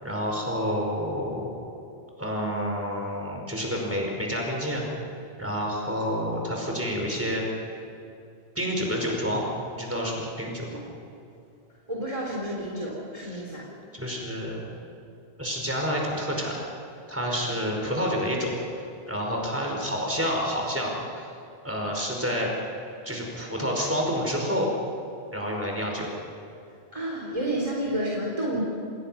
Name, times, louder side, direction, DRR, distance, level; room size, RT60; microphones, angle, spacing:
voice 1, 0.0-1.5 2.2-4.8 5.4-7.5 8.6-9.4 9.7-10.8 13.3-13.4 13.9-14.6 15.4-16.5 17.1-18.5 19.1-21.3 21.6-22.5 23.0-24.7 25.3-26.1, equal, 15° right, -1 dB, 5.2 m, -29 dB
voice 2, 11.9-13.6 26.9-28.6, right 1 dB, 30° right, -3 dB, 3.6 m, -30 dB
28.0 x 21.0 x 5.9 m, 2.7 s
omnidirectional pair, 1.1 m